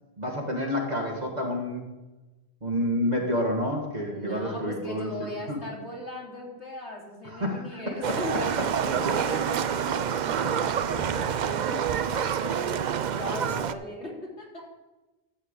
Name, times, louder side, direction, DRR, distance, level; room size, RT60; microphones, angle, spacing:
voice 1, 0.2-1.8 2.6-5.6 7.2-7.9, left 1 dB, 40° right, -1 dB, 1.7 m, -29 dB
voice 2, 4.1-8.5 8.8-14.6, left 1 dB, 90° left, -3 dB, 3.4 m, -38 dB
Livestock farm animals working animals, 8.0-13.7, right 8 dB, 55° right, 0.5 m, -27 dB
13.5 x 4.5 x 8.1 m, 1.1 s
omnidirectional pair, 1.1 m